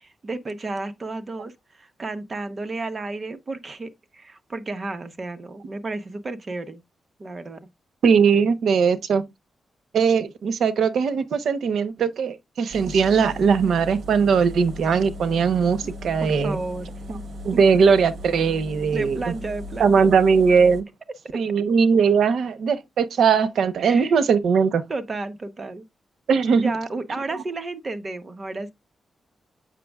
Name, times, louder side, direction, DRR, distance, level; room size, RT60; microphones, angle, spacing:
voice 1, 0.0-6.8 7.2-7.7 15.8-15.9 16.2-17.2 18.9-20.2 21.3-21.4 23.8-24.1 24.9-25.8 26.6-28.7, right 3 dB, 30° right, 0.9 m, -32 dB
voice 2, 8.0-9.2 9.9-16.6 17.4-19.2 19.8-20.8 21.3-24.8 26.3-26.7, right 6 dB, 75° right, 0.8 m, -19 dB
sound 1, 12.7-20.8, left 1 dB, 60° right, 1.1 m, -37 dB
7.5 x 6.1 x 2.3 m
wide cardioid pair, 150°, 0 cm